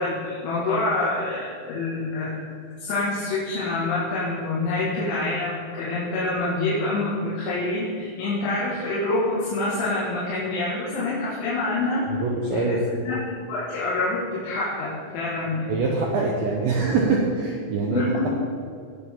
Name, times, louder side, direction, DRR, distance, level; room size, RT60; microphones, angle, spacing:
voice 1, 0.0-2.4 2.8-12.0 12.5-12.8 13.1-15.7 17.9-18.3, left 2 dB, 70° left, -7 dB, 4.1 m, -26 dB
voice 2, 12.1-12.8 15.7-18.0, right 3 dB, 90° right, -2 dB, 2.0 m, -24 dB
18.5 x 7.1 x 3.7 m, 2.3 s
omnidirectional pair, 5.7 m